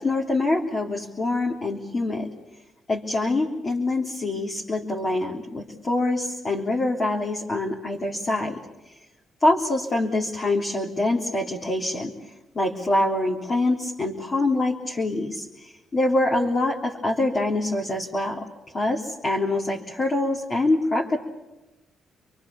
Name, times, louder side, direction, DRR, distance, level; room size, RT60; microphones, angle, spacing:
voice 1, 0.0-2.3 2.9-8.6 9.4-12.1 12.6-18.5 18.7-21.2, left 2 dB, 30° left, -1 dB, 3.6 m, -25 dB
28.5 x 23.0 x 7.2 m, 1.0 s
cardioid pair, 90°, 0 cm